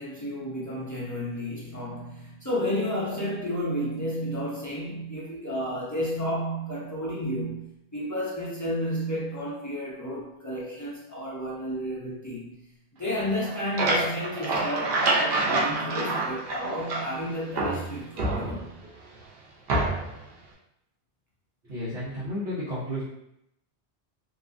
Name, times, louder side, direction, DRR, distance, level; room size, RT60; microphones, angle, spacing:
voice 1, 0.0-12.6 13.0-18.7, equal, 30° left, -6 dB, 0.3 m, -32 dB
sound 1, 13.3-17.2 17.6-18.9 19.7-20.2, right 2 dB, 65° right, 0.7 m, -27 dB
voice 2, 21.6-23.0, equal, 90° right, -12 dB, 1.3 m, -32 dB
2.9 x 2.3 x 2.4 m, 0.79 s
omnidirectional pair, 1.1 m